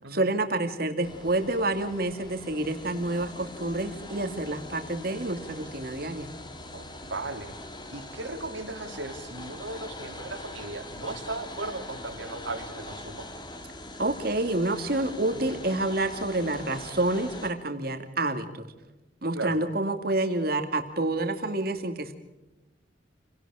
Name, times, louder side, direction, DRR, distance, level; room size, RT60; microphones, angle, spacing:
voice 1, 0.1-6.3 14.0-18.7 19.2-22.1, right 2 dB, 50° right, 6 dB, 2.4 m, -28 dB
sound 1, 1.0-17.5, left 1 dB, 25° left, 2.3 m, -42 dB
voice 2, 6.7-7.6 7.9-13.3 15.3-15.5 19.3-19.6, right 2 dB, 90° right, 3 dB, 3.7 m, -37 dB
29.0 x 18.0 x 5.0 m, 1.0 s
head